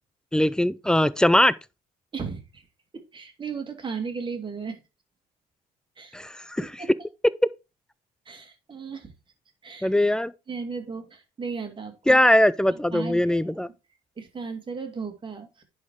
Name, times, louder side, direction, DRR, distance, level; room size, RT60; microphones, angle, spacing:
voice 1, 0.3-1.5 6.1-6.7 9.8-10.3 12.1-13.7, left 1 dB, 5° left, 0.5 m, -21 dB
voice 2, 2.1-2.6 2.9-4.8 6.0-6.2 6.6-6.9 8.3-9.1 9.6-9.9 10.5-12.2 12.7-13.7 14.2-15.6, right 5 dB, 30° right, 2.5 m, -36 dB
10.5 x 4.3 x 4.7 m
cardioid pair, 110°, 17 cm